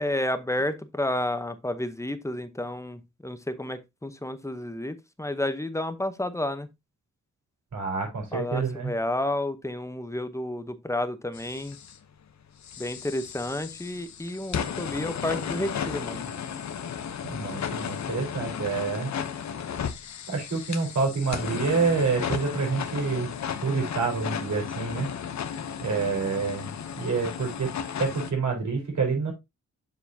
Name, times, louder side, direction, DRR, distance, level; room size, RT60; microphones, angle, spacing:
voice 1, 0.0-6.7 8.3-11.8 12.8-16.3, left 1 dB, 10° left, 0.9 m, -31 dB
voice 2, 7.7-8.9 17.3-19.1 20.3-23.3 23.6-25.1 25.8-27.7 28.0-29.3, right 4 dB, 75° right, 4.1 m, -27 dB
sound 1, 11.3-12.0 12.6-28.3, left 7 dB, 65° left, 0.8 m, -34 dB
7.0 x 7.0 x 2.7 m
cardioid pair, 90°, 29 cm